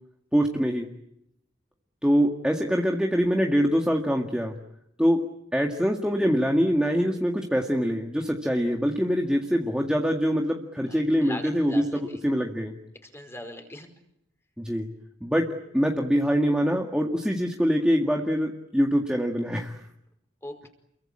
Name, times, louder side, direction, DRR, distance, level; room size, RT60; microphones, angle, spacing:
voice 1, 0.3-0.9 2.0-4.6 5.0-5.2 5.5-12.7 14.6-14.9 15.2-19.8, equal, 5° right, 1 dB, 1.9 m, -24 dB
voice 2, 10.9-12.2 13.0-13.9 20.4-20.7, left 1 dB, 15° left, 6 dB, 5.0 m, -40 dB
29.5 x 23.0 x 8.8 m, 0.80 s
head